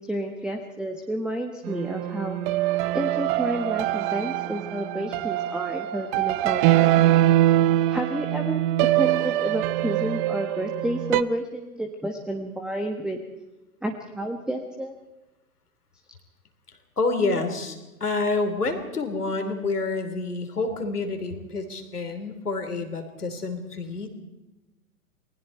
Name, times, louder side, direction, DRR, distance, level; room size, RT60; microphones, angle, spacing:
voice 1, 0.0-2.4 2.9-6.9 7.9-8.6 8.9-13.2 13.8-14.9, right 1 dB, ahead, 4 dB, 1.4 m, -30 dB
sound 1, 1.7-11.2, right 14 dB, 35° right, 0.7 m, -23 dB
voice 2, 17.0-24.1, left 3 dB, 85° left, 6 dB, 3.5 m, -28 dB
28.5 x 20.5 x 4.5 m, 1.0 s
figure-of-eight pair, 105°, 45 cm